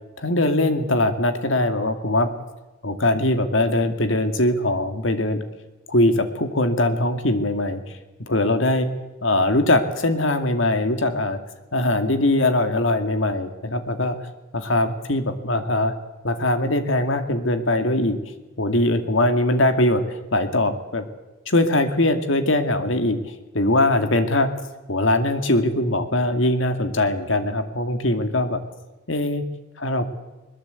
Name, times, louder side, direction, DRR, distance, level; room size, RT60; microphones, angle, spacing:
voice 1, 0.2-2.3 2.8-5.4 5.9-7.8 8.3-8.9 9.2-11.4 11.7-14.2 14.5-15.9 16.2-18.2 18.6-21.1 21.5-23.2 23.5-24.5 24.9-28.6 29.1-29.4 29.8-30.1, left 1 dB, 65° left, 8 dB, 2.4 m, -21 dB
21.0 x 21.0 x 8.4 m, 1.1 s
head